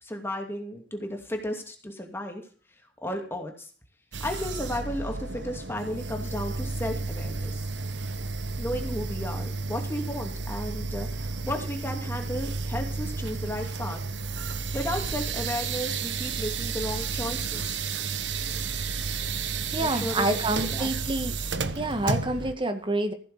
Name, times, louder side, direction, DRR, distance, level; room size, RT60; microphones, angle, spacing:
voice 1, 0.0-2.4 3.0-3.7 4.2-7.6 8.6-14.0 14.7-17.9 19.8-20.9, left 1 dB, 15° left, 3 dB, 2.6 m, -34 dB
sound 1, 4.1-22.5, right 4 dB, 85° right, 1.2 m, -32 dB
voice 2, 19.7-21.4 21.7-23.1, right 1 dB, 30° right, 7 dB, 1.9 m, -27 dB
15.5 x 6.9 x 6.8 m, 0.40 s
head